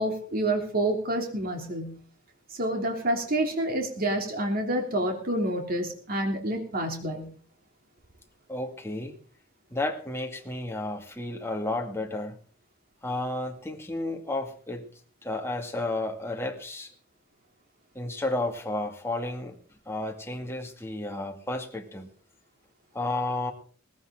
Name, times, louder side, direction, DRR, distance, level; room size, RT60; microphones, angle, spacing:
voice 1, 0.0-2.0 2.5-7.3, right 1 dB, 45° right, 2 dB, 3.1 m, -28 dB
voice 2, 8.5-9.2 9.7-12.4 13.0-14.9 15.2-16.9 17.9-19.6 19.9-22.1 22.9-23.5, left 2 dB, 15° left, 2 dB, 2.2 m, -32 dB
19.5 x 14.5 x 3.8 m, 0.43 s
head